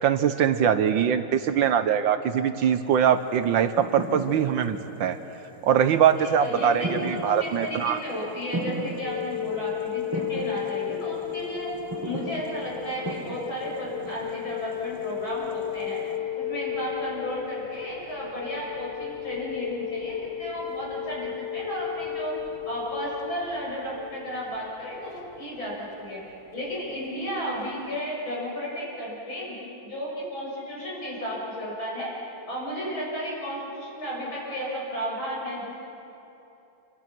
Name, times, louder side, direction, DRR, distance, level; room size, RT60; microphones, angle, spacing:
voice 1, 0.0-5.2 5.6-8.0, right 8 dB, 70° right, 10 dB, 1.4 m, -22 dB
sound 1, 2.9-16.2, right 2 dB, 15° right, 0.7 m, -38 dB
voice 2, 6.2-11.7 12.0-16.0 16.4-22.3 22.7-26.2 26.5-32.1 32.5-35.8, equal, 65° left, -5 dB, 7.9 m, -33 dB
sound 2, 9.0-27.9, left 10 dB, 85° left, 0.5 m, -35 dB
28.0 x 25.5 x 6.0 m, 3.0 s
omnidirectional pair, 2.3 m